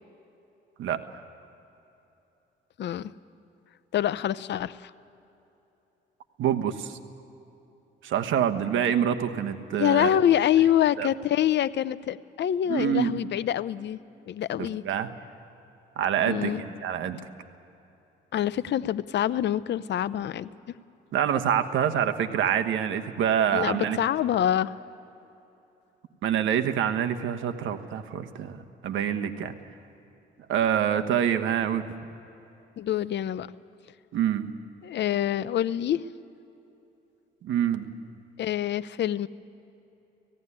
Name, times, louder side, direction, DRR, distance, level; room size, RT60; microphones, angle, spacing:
voice 1, 0.8-1.2 6.4-7.0 8.0-10.1 11.0-11.1 12.7-13.2 14.8-15.1 16.0-17.2 21.1-24.0 26.2-29.5 30.5-31.9 34.1-34.4 37.4-37.9, right 9 dB, 80° right, 8 dB, 1.3 m, -26 dB
voice 2, 2.8-3.1 3.9-4.9 9.8-14.0 14.3-14.8 16.3-16.6 18.3-20.5 23.5-24.8 32.8-33.5 34.8-36.0 38.4-39.3, left 11 dB, 60° left, 16 dB, 0.7 m, -26 dB
17.5 x 16.0 x 9.9 m, 3.0 s
cardioid pair, 90°, 20 cm